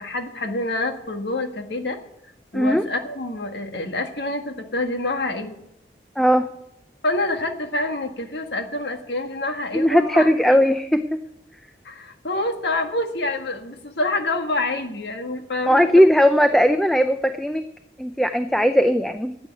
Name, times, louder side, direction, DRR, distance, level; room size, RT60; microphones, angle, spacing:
voice 1, 0.0-2.0 2.5-5.5 7.0-10.6 11.9-16.0, left 2 dB, 70° left, 5 dB, 1.6 m, -27 dB
voice 2, 6.2-6.5 9.7-11.2 15.7-17.6 18.0-19.4, equal, ahead, 9 dB, 0.4 m, -18 dB
11.0 x 8.3 x 9.4 m, 0.82 s
head